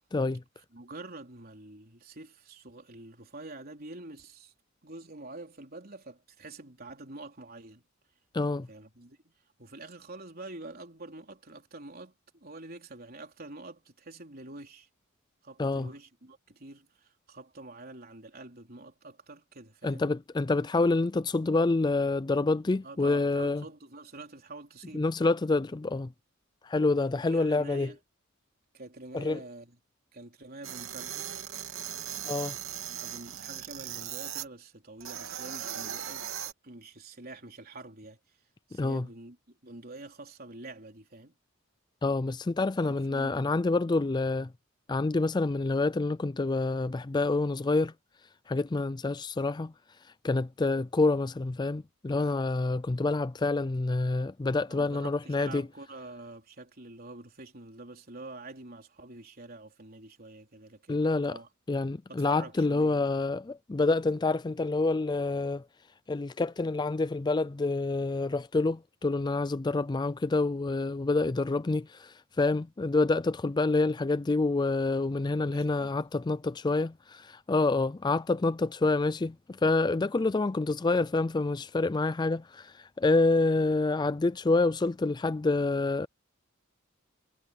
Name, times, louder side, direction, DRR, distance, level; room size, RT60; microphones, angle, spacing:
voice 1, 0.1-0.4 8.3-8.7 15.6-15.9 19.8-23.6 24.9-26.1 26.6-27.9 29.1-29.4 32.2-32.6 38.7-39.1 42.0-44.5 44.9-47.9 48.5-49.7 50.2-55.7 60.9-61.4 61.7-65.6 66.1-86.1, left 3 dB, 20° left, 0.4 m, -27 dB
voice 2, 0.7-4.5 4.8-7.8 8.7-9.3 9.6-14.9 15.4-20.1 22.8-25.1 27.1-28.0 28.7-29.8 30.1-31.4 32.9-36.3 36.6-38.2 38.7-39.4 39.6-41.4 42.8-43.6 54.7-61.5 62.1-63.1 75.5-75.9, right 2 dB, 45° right, 3.9 m, -46 dB
sound 1, 30.6-34.5 35.0-36.5, right 10 dB, 75° right, 2.9 m, -38 dB
head